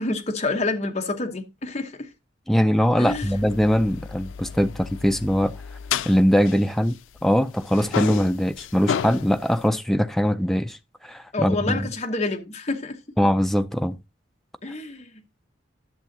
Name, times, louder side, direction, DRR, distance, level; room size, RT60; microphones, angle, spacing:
voice 1, 0.0-2.1 3.0-3.4 11.3-13.2 14.6-15.2, left 3 dB, 35° left, 1.0 m, -28 dB
voice 2, 2.5-5.5 6.0-10.8 11.0-11.8 13.2-14.0, equal, ahead, 0.3 m, -21 dB
sound 1, 3.1-7.3 7.6-9.7, left 8 dB, 85° left, 0.4 m, -33 dB
10.5 x 6.9 x 2.7 m
head